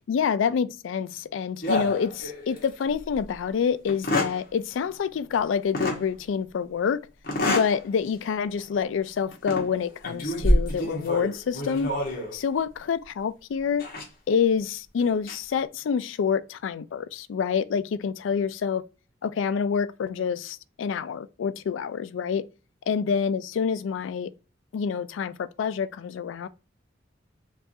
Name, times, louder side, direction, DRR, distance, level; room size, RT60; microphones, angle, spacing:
voice 1, 0.1-7.0 7.4-11.9 12.3-13.8 14.3-18.8 19.2-22.4 22.9-24.3 24.7-26.5, left 6 dB, 80° left, 0.3 m, -27 dB
sound 1, 1.6-2.7 3.1-3.2 3.9-4.4 5.7-6.0 7.2-7.8 8.2-8.4 9.3-9.7 10.0-12.4 13.8-14.0 15.0-15.3, left 1 dB, 50° left, 1.2 m, -27 dB
4.6 x 2.4 x 2.7 m
head